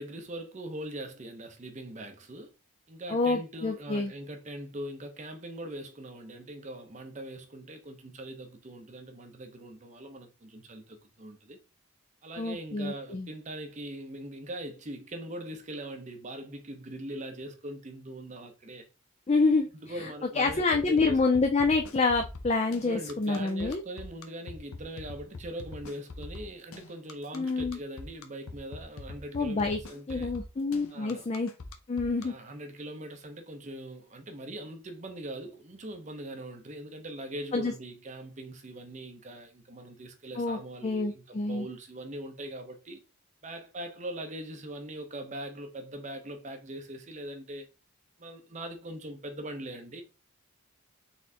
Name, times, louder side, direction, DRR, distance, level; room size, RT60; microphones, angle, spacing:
voice 1, 0.0-2.5 2.9-11.6 12.2-18.9 19.8-21.4 22.8-30.3 30.9-31.3 32.2-43.0 43.4-47.7 48.2-50.0, right 1 dB, 30° right, 0.7 m, -41 dB
voice 2, 3.1-4.1 12.4-13.3 19.3-19.7 20.3-23.8 27.3-27.8 29.3-29.8 30.1-31.5 31.9-32.3 37.5-37.7 40.4-41.7, left 3 dB, 30° left, 0.4 m, -27 dB
sound 1, 20.5-32.2, left 2 dB, 75° left, 0.7 m, -43 dB
4.1 x 3.7 x 2.8 m
head